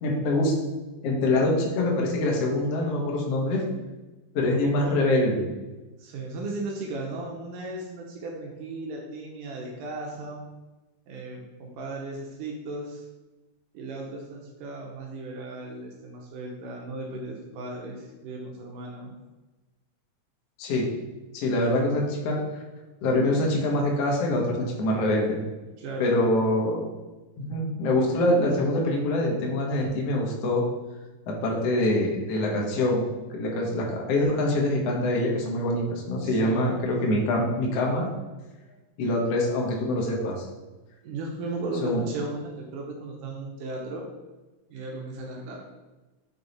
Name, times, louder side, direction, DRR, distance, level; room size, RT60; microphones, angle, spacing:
voice 1, 0.0-0.5 1.0-3.7 4.4-5.5 20.6-20.9 21.3-22.4 23.0-25.4 26.0-26.9 27.4-30.6 31.3-33.0 33.3-38.1 39.0-40.4 41.8-42.0, left 1 dB, 60° left, -1 dB, 1.9 m, -24 dB
voice 2, 4.3-5.0 6.0-10.5 11.1-13.1 13.7-19.2 25.8-26.3 36.2-36.8 38.7-38.8 41.0-44.1 44.7-45.7, right 2 dB, 85° right, -1 dB, 2.4 m, -36 dB
6.9 x 3.5 x 4.0 m, 1.1 s
omnidirectional pair, 3.6 m